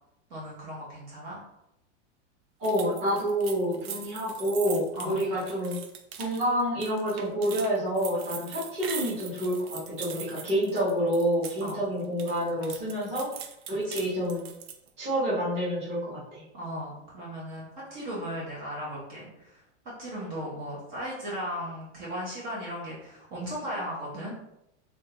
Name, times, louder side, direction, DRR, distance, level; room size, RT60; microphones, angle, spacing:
voice 1, 0.3-1.4 4.9-5.1 11.6-11.8 13.7-14.0 16.5-24.3, equal, 40° right, -6 dB, 1.0 m, -37 dB
voice 2, 2.6-5.8 6.2-13.3 13.7-14.5 15.0-16.4, equal, 20° right, -9 dB, 1.1 m, -28 dB
sound 1, 2.6-11.7 12.0-14.9, right 8 dB, 60° right, 0.5 m, -41 dB
3.4 x 2.8 x 2.9 m, 0.83 s
supercardioid pair, 175°, 35 cm